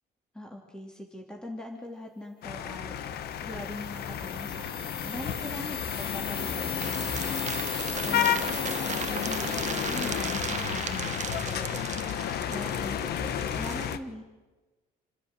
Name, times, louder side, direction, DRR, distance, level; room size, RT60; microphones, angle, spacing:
voice 1, 0.3-14.2, left 1 dB, 5° left, 0 dB, 3.2 m, -42 dB
sound 1, 2.4-14.0, left 9 dB, 70° left, 1.4 m, -32 dB
sound 2, 3.2-11.2, left 4 dB, 30° left, 2.3 m, -39 dB
sound 3, 6.8-13.9, right 8 dB, 45° right, 1.2 m, -38 dB
29.0 x 10.5 x 9.0 m, 1.2 s
cardioid pair, 110°, 17 cm